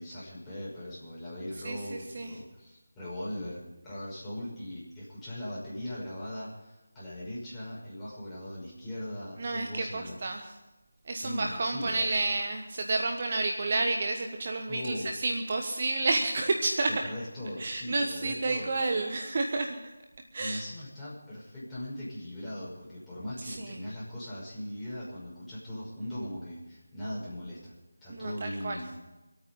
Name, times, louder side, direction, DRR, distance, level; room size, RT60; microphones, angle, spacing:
voice 1, 0.0-10.2 11.2-12.1 14.7-15.1 16.9-18.7 20.4-27.7 28.0-28.9, left 1 dB, 5° left, -10 dB, 5.7 m, -39 dB
voice 2, 1.6-2.3 9.4-10.5 11.0-17.0 17.6-19.8 20.3-20.7 23.4-23.8 28.1-28.8, right 2 dB, 40° right, 4 dB, 1.2 m, -30 dB
26.0 x 9.0 x 5.4 m, 1.1 s
figure-of-eight pair, 160°, 0 cm